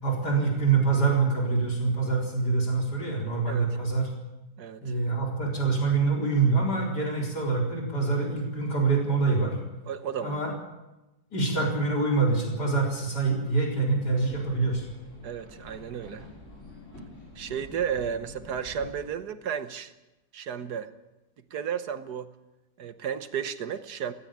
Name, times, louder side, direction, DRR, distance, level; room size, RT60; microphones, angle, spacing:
voice 1, 0.0-4.1 4.8-9.6 10.2-10.5 11.3-14.8, right 4 dB, 80° left, -1 dB, 4.8 m, -25 dB
voice 2, 4.6-5.0 9.9-10.6 15.2-16.3 17.3-19.9 20.3-20.9 21.5-22.3 22.8-24.1, right 8 dB, 75° right, 11 dB, 1.6 m, -33 dB
sound 1, 14.0-19.1, left 2 dB, 45° left, 7.1 m, -47 dB
17.0 x 17.0 x 9.0 m, 0.99 s
omnidirectional pair, 1.7 m